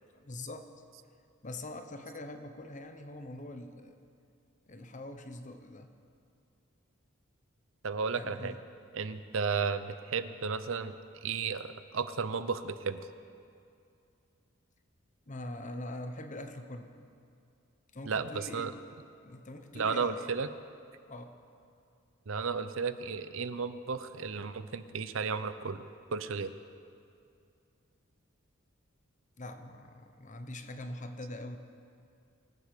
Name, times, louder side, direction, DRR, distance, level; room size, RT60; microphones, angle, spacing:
voice 1, 0.1-0.7 1.4-4.0 4.7-5.9 8.2-8.6 15.3-16.9 17.9-18.8 19.2-20.3 21.1-21.4 29.4-31.6, left 1 dB, 35° left, 7 dB, 1.0 m, -43 dB
voice 2, 7.8-8.5 8.9-10.9 11.2-13.0 18.1-18.7 19.7-20.5 22.3-25.8 26.1-26.5, right 5 dB, 65° right, 12 dB, 0.7 m, -33 dB
24.0 x 8.2 x 6.7 m, 2.4 s
head